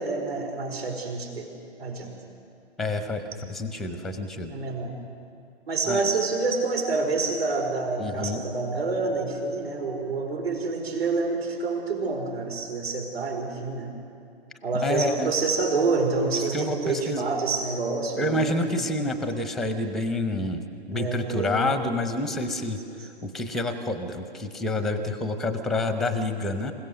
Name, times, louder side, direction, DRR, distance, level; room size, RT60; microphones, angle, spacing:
voice 1, 0.0-1.5 1.8-2.2 4.5-5.0 5.7-13.9 14.6-18.7 20.9-21.8, right 3 dB, 70° right, 2 dB, 4.7 m, -27 dB
voice 2, 2.8-4.5 5.9-6.0 8.0-8.4 14.8-15.3 16.3-17.3 18.2-22.8 23.2-26.7, left 2 dB, ahead, 9 dB, 0.7 m, -28 dB
27.0 x 16.5 x 6.5 m, 2.4 s
figure-of-eight pair, 125°, 32 cm